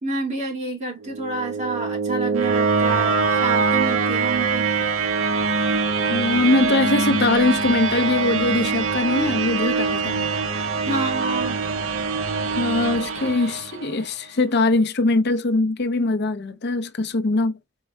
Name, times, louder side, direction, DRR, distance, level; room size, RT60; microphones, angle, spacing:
voice 1, 0.0-4.7 10.9-11.6, right 2 dB, 35° right, 2.1 m, -29 dB
sound 1, 1.0-14.0, right 4 dB, 80° right, 0.7 m, -23 dB
voice 2, 6.1-10.3 12.6-17.5, left 2 dB, 55° left, 0.7 m, -21 dB
4.7 x 4.3 x 2.3 m
head